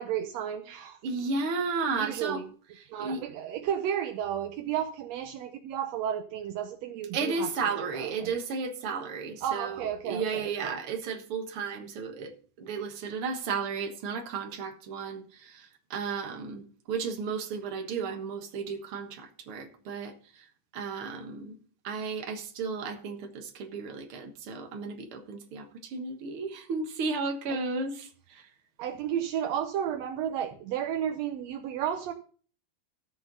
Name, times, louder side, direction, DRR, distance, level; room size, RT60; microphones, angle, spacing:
voice 1, 0.0-1.0 2.1-2.4 2.9-8.4 9.4-10.5 28.8-32.1, right 9 dB, 75° right, 1.6 m, -32 dB
voice 2, 1.0-2.4 2.8-3.2 7.1-20.5 20.7-21.6 21.8-28.5, right 4 dB, 50° right, 1.9 m, -34 dB
14.0 x 8.0 x 3.9 m
omnidirectional pair, 3.8 m